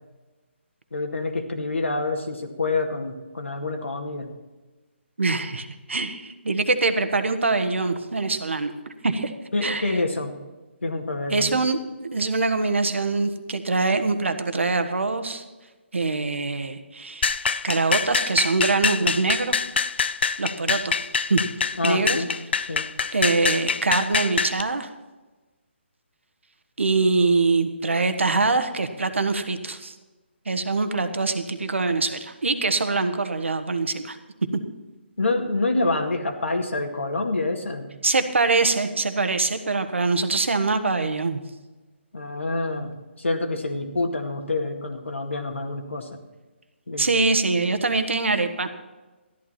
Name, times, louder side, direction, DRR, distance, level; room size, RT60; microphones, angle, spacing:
voice 1, 0.9-4.3 9.5-10.3 10.8-11.5 21.8-22.3 22.6-22.9 35.2-37.9 42.1-46.2 46.9-47.1, left 2 dB, 90° left, 3 dB, 2.1 m, -27 dB
voice 2, 5.2-8.7 9.0-9.3 9.6-9.9 11.3-15.4 15.9-17.4 17.6-19.6 20.4-20.9 21.3-21.4 21.8-22.2 23.1-24.9 26.8-30.0 30.4-34.2 38.0-41.4 47.0-48.7, right 3 dB, 80° right, 9 dB, 1.4 m, -23 dB
sound 1, 17.2-24.6, left 6 dB, 60° left, 0.6 m, -25 dB
13.5 x 12.0 x 4.3 m, 1.2 s
figure-of-eight pair, 155°, 7 cm